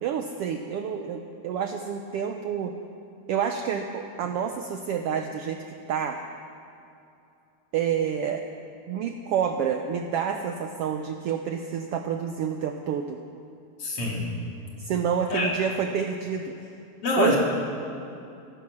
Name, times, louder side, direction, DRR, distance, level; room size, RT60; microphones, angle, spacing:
voice 1, 0.0-2.7 3.3-5.6 5.9-6.2 7.7-8.4 8.9-13.2 14.8-16.5 17.2-17.4, right 7 dB, 90° right, 5 dB, 1.3 m, -28 dB
voice 2, 13.8-14.5 15.3-15.5 17.0-17.4, left 2 dB, 50° left, -2 dB, 3.1 m, -25 dB
15.5 x 14.5 x 6.2 m, 2.6 s
omnidirectional pair, 3.5 m